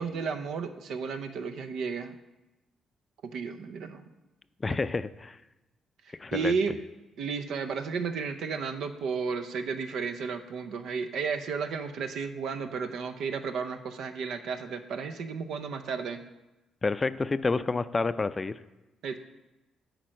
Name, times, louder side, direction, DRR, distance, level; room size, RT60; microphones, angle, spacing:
voice 1, 0.0-2.2 3.2-4.0 4.7-4.8 6.1-6.8 7.2-16.2 19.0-19.2, right 5 dB, 75° right, 7 dB, 0.7 m, -33 dB
voice 2, 4.6-5.4 6.2-6.5 16.8-18.6, left 3 dB, 30° left, 13 dB, 0.4 m, -29 dB
8.8 x 4.6 x 6.3 m, 1.0 s
supercardioid pair, 65°, 0 cm